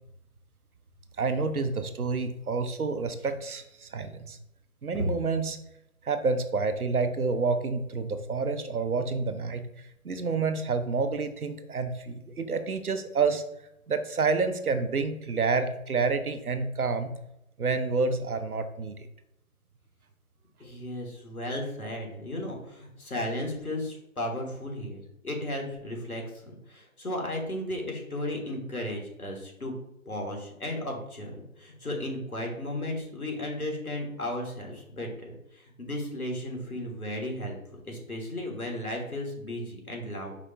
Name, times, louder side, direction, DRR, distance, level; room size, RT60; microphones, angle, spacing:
voice 1, 1.2-4.4 4.8-5.6 6.0-13.4 13.9-17.1 17.6-19.0, right 4 dB, 85° right, 9 dB, 0.7 m, -28 dB
voice 2, 20.6-26.2 26.7-29.7 30.0-40.3, left 1 dB, 90° left, 1 dB, 1.6 m, -35 dB
4.9 x 2.4 x 4.2 m, 0.83 s
figure-of-eight pair, 160°, 43 cm